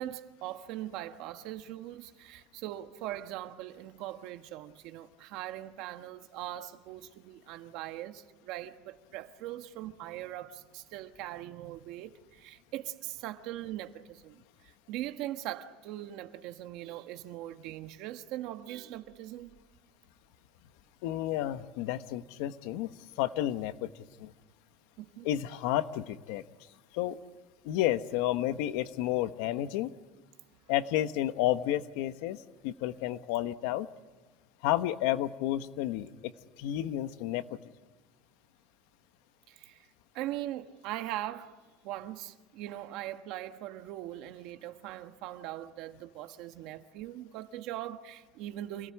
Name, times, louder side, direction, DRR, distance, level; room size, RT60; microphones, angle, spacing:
voice 1, 0.0-19.5 25.0-25.3 39.5-39.8 40.1-41.6 41.8-48.9, right 13 dB, 55° right, 1.4 m, -41 dB
voice 2, 21.0-22.9 23.2-23.9 24.2-24.3 25.2-26.4 26.9-27.2 27.6-29.9 30.7-33.9 34.6-36.3 36.6-37.4, left 13 dB, 75° left, 1.1 m, -31 dB
28.0 x 18.5 x 9.9 m
cardioid pair, 175°, 0 cm